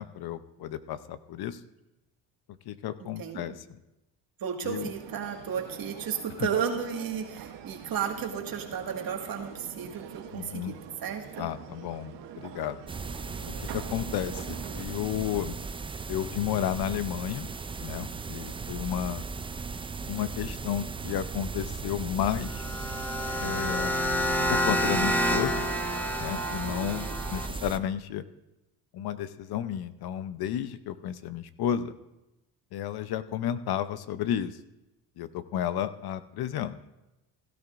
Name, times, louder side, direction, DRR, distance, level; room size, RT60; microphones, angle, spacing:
voice 1, 0.0-1.6 2.7-3.6 4.6-4.9 6.4-6.5 10.3-10.7 11.4-12.8 13.6-15.5 16.1-17.5 17.8-19.2 20.1-22.6 23.4-23.9 24.5-25.7 26.2-28.2 28.9-32.0 32.7-34.6 35.2-36.8, left 10 dB, 55° left, 13 dB, 0.8 m, -32 dB
voice 2, 3.0-3.6 4.4-10.7 11.0-11.5 26.6-27.6, right 7 dB, 50° right, 3 dB, 2.0 m, -34 dB
sound 1, 4.7-14.8, right 10 dB, 70° right, 1.1 m, -45 dB
sound 2, 12.9-27.8, right 4 dB, 15° right, 0.4 m, -37 dB
sound 3, 22.4-27.5, equal, 5° left, 1.2 m, -29 dB
17.0 x 12.5 x 2.6 m, 0.95 s
supercardioid pair, 90°, 45 cm